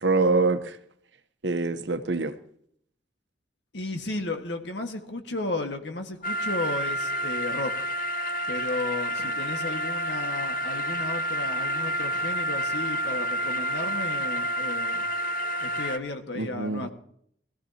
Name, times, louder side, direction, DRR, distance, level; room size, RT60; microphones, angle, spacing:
voice 1, 0.0-0.8 1.4-2.3 16.3-16.9, right 3 dB, 75° right, 1.0 m, -25 dB
voice 2, 3.7-7.7 8.5-15.1 15.6-16.9, left 2 dB, 75° left, 1.6 m, -34 dB
sound 1, 6.2-16.0, equal, 50° left, 0.8 m, -29 dB
21.5 x 14.5 x 2.9 m
head